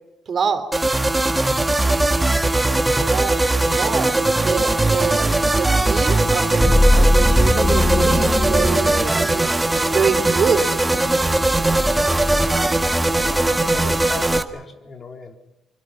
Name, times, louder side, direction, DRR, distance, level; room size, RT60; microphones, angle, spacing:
voice 1, 0.3-0.6 2.9-3.3 3.6-9.3 9.9-10.7, right 6 dB, 50° right, 8 dB, 3.2 m, -25 dB
sound 1, 0.7-14.4, right 2 dB, 15° right, 1.8 m, -19 dB
voice 2, 2.6-3.0 13.2-15.3, left 4 dB, 45° left, 3 dB, 3.7 m, -38 dB
sound 2, 6.6-14.4, left 1 dB, 10° left, 1.0 m, -22 dB
sound 3, 7.5-13.9 14.2-14.4, right 8 dB, 70° right, 3.4 m, -38 dB
25.5 x 24.0 x 5.9 m, 0.93 s
cardioid pair, 90°, 0 cm